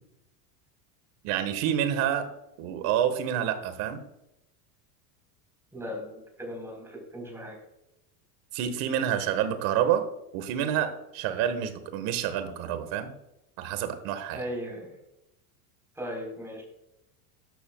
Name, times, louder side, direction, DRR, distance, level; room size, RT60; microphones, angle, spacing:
voice 1, 1.2-2.3 2.6-4.0 8.5-10.1 10.3-13.1 13.6-14.4, right 9 dB, 55° right, 10 dB, 1.5 m, -28 dB
voice 2, 5.7-7.6 14.3-14.9 16.0-16.6, equal, 5° right, -1 dB, 4.1 m, -37 dB
12.5 x 11.5 x 2.3 m, 0.88 s
supercardioid pair, 145°, 42 cm